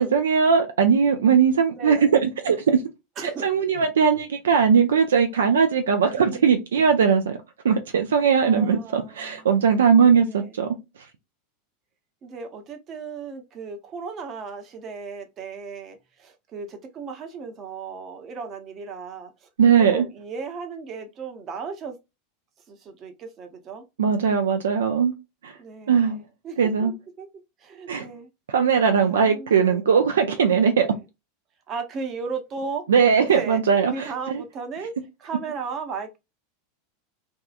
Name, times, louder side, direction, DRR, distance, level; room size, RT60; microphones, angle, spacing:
voice 1, 0.0-2.8 3.4-7.4 7.6-10.7 19.6-20.0 24.0-25.1 25.4-25.5 25.9-26.2 26.6-26.9 27.9-28.1 28.5-30.9 32.9-34.1, right 6 dB, 75° right, 0.4 m, -19 dB
voice 2, 1.7-2.1 3.2-3.5 6.2-6.6 8.3-9.6 10.0-10.6 12.2-19.5 19.8-22.0 22.7-23.8 25.6-27.3 27.6-28.3 29.0-29.9 30.2-30.5 30.9-31.0 31.7-32.8 33.2-33.6 33.9-34.9 35.2-36.2, right 5 dB, 35° right, 0.7 m, -36 dB
2.6 x 2.3 x 2.3 m
figure-of-eight pair, 90°, 0 cm